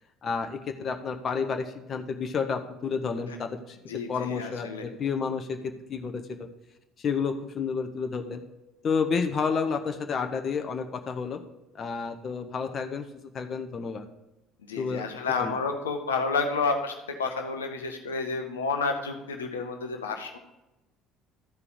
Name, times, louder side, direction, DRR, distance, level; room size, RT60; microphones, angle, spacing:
voice 1, 0.2-3.8 4.1-6.5 7.0-8.4 8.8-11.4 11.7-13.1 13.3-14.1 14.8-15.0 15.4-15.5, left 5 dB, 40° left, 6 dB, 0.8 m, -30 dB
voice 2, 3.9-4.8 14.7-20.4, left 4 dB, 75° left, 5 dB, 0.8 m, -30 dB
13.0 x 4.9 x 4.9 m, 0.96 s
figure-of-eight pair, 60°, 0 cm